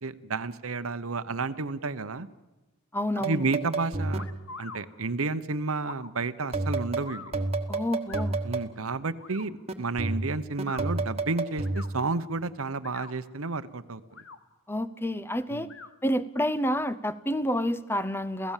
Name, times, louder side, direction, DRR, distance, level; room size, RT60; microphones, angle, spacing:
voice 1, 0.0-2.3 3.2-4.2 4.6-7.3 8.4-14.0 15.5-15.7, right 3 dB, 80° right, 13 dB, 1.0 m, -31 dB
voice 2, 2.9-3.4 7.7-8.4 14.7-15.7 16.0-18.5, equal, 10° left, 13 dB, 0.7 m, -29 dB
sound 1, 3.2-4.4 6.5-8.7 9.7-12.0, right 2 dB, 30° right, 1.4 m, -30 dB
sound 2, 4.2-4.8 5.8-6.1 7.0-7.3 8.1-8.3 9.2-9.5 10.5-10.9 11.6-11.9 12.7-13.2 14.0-14.4 15.6-15.9, left 4 dB, 65° left, 1.6 m, -43 dB
29.0 x 16.5 x 7.4 m, 1.1 s
head